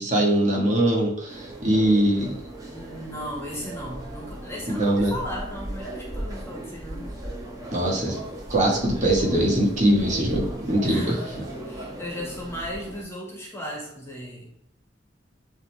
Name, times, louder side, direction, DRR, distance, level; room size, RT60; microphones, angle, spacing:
voice 1, 0.0-2.3 4.8-5.1 7.7-8.2 8.5-11.2, right 1 dB, 40° right, -3 dB, 1.8 m, -22 dB
sound 1, 1.3-13.0, right 1 dB, 20° right, 1.4 m, -37 dB
voice 2, 2.7-7.2 10.8-14.7, equal, 15° left, -2 dB, 1.9 m, -36 dB
10.0 x 3.7 x 3.5 m, 0.74 s
head